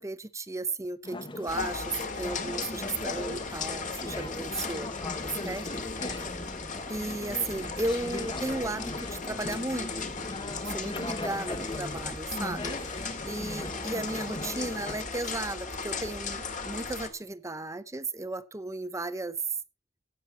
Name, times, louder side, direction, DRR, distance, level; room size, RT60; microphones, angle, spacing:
voice 1, 0.0-4.9 5.4-5.8 6.9-10.1 10.6-12.7 13.2-19.4, right 2 dB, 15° right, 0.7 m, -35 dB
Conversation / Chatter, 1.0-15.0, left 2 dB, 25° left, 0.9 m, -39 dB
sound 1, 1.5-9.8 10.9-11.0, left 6 dB, 85° left, 0.7 m, -46 dB
sound 2, 1.5-17.1, left 4 dB, 40° left, 2.3 m, -37 dB
17.0 x 7.5 x 4.2 m
head